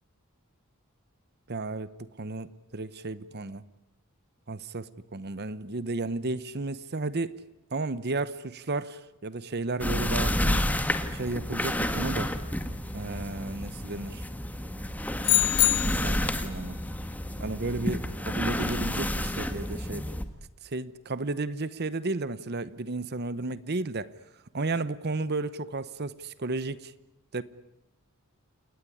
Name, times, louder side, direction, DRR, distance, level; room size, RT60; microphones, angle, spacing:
voice 1, 1.5-3.6 4.5-7.4 7.7-10.7 11.1-12.3 12.9-14.2 15.8-16.8 17.4-20.1 20.6-24.1 24.5-26.9 27.3-27.4, right 3 dB, 45° right, 0.9 m, -33 dB
sound 1, 9.8-20.2, left 1 dB, 5° left, 1.6 m, -30 dB
sound 2, 15.2-16.3, left 16 dB, 90° left, 0.9 m, -24 dB
29.5 x 19.0 x 9.8 m
head